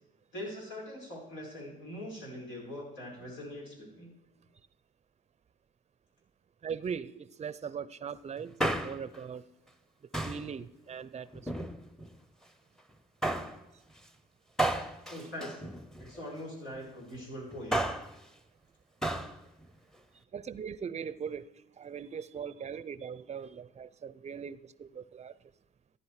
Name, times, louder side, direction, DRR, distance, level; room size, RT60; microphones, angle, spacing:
voice 1, 0.3-4.1 15.1-17.8, left 1 dB, 80° left, -2 dB, 5.4 m, -42 dB
voice 2, 6.6-9.5 10.2-11.7 15.1-15.2 20.3-25.4, right 7 dB, 35° right, 17 dB, 0.6 m, -40 dB
Male speech man speaking, 8.4-9.2 10.1-10.5 11.3-12.1 13.2-13.6 14.6-16.2 17.5-18.1 19.0-19.3 19.6-19.7, right 1 dB, 5° left, 0.8 m, -33 dB
14.0 x 10.5 x 4.8 m, 0.94 s
cardioid pair, 90°, 20 cm